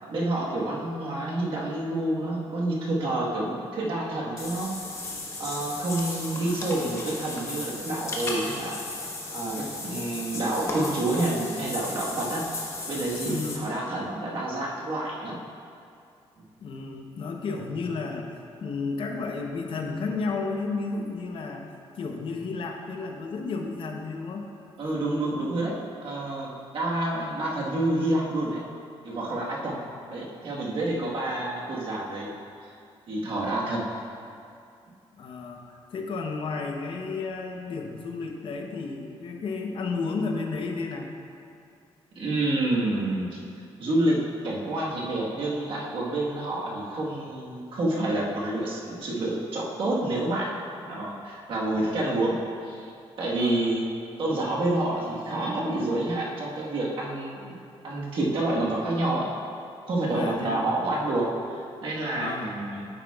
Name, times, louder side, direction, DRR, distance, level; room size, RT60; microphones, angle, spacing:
voice 1, 0.0-4.8 5.4-8.8 9.3-12.4 12.9-15.4 24.8-25.7 26.0-28.6 29.0-29.8 30.1-32.3 32.6-32.7 33.1-33.8 42.1-43.4 43.8-50.6 50.9-52.9 53.2-53.9 54.2-57.6 57.8-59.3 59.9-62.9, right 1 dB, 55° right, -4 dB, 1.4 m, -28 dB
Water / Bathtub (filling or washing), 4.4-13.6, left 2 dB, 25° left, 1.1 m, -35 dB
voice 2, 13.2-13.6 16.6-21.6 22.0-24.5 29.8-29.9 30.9-31.2 35.2-41.1 53.3-53.7 60.1-60.6 62.2-62.6, left 4 dB, 55° left, 2 dB, 0.8 m, -32 dB
9.2 x 8.8 x 2.4 m, 2.4 s
cardioid pair, 140°, 10 cm